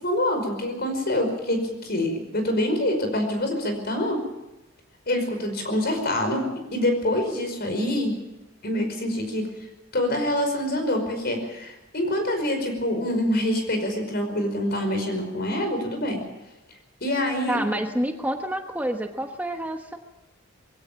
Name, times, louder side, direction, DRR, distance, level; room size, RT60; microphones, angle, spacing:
voice 1, 0.0-4.2 5.1-8.2 8.6-9.5 9.9-16.2 17.0-17.6, left 1 dB, 50° left, 6 dB, 5.3 m, -26 dB
voice 2, 17.5-20.0, right 1 dB, 10° right, 4 dB, 1.1 m, -28 dB
22.0 x 16.5 x 7.5 m, 1.0 s
head